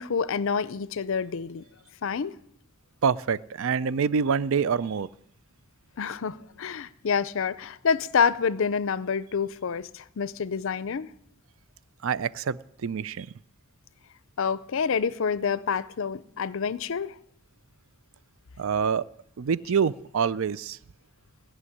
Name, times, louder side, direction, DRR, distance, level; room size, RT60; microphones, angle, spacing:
voice 1, 0.0-1.6 2.0-2.4 6.0-11.1 14.4-17.1, left 6 dB, 65° left, 0.5 m, -27 dB
voice 2, 3.0-5.1 12.0-13.3 18.6-19.0 19.4-20.8, right 6 dB, 65° right, 0.4 m, -26 dB
16.5 x 6.2 x 9.7 m
head